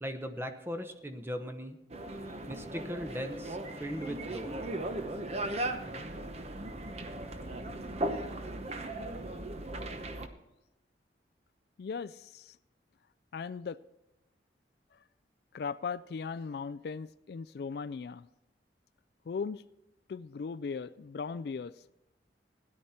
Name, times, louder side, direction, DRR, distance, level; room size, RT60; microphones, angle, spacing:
voice 1, 0.0-1.8 2.5-4.6, equal, 15° right, 0.9 m, -38 dB
sound 1, 1.9-10.3, right 1 dB, 35° right, 0.9 m, -37 dB
voice 2, 11.8-12.6 13.3-13.8 15.5-18.3 19.3-19.6 20.1-21.8, left 5 dB, 60° left, 0.3 m, -38 dB
16.5 x 11.0 x 4.3 m
head